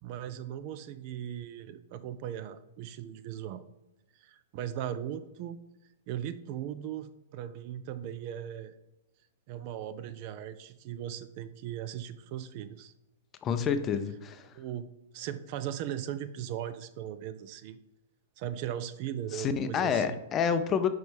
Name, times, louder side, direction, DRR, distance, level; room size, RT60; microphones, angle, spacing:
voice 1, 0.0-3.6 4.2-5.6 6.1-8.7 9.5-12.9 14.5-14.9 15.1-17.8 18.4-20.2, right 10 dB, 40° right, 12 dB, 0.4 m, -38 dB
voice 2, 13.4-14.4 19.3-20.9, left 7 dB, 25° left, 9 dB, 0.5 m, -28 dB
5.9 x 5.0 x 3.5 m, 0.94 s
figure-of-eight pair, 105°, 0 cm